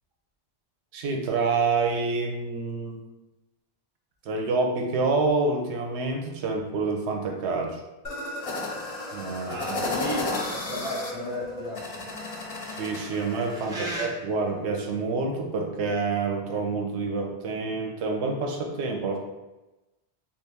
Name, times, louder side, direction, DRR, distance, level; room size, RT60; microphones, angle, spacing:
voice 1, 0.9-3.0 4.2-7.8 9.1-9.9 12.7-19.2, right 3 dB, 85° right, 2 dB, 0.9 m, -27 dB
sound 1, 8.0-13.6, left 2 dB, 45° left, 0.5 m, -33 dB
voice 2, 9.5-12.0 13.5-14.1, equal, 5° right, -4 dB, 0.5 m, -34 dB
3.1 x 2.4 x 3.4 m, 1.1 s
omnidirectional pair, 1.1 m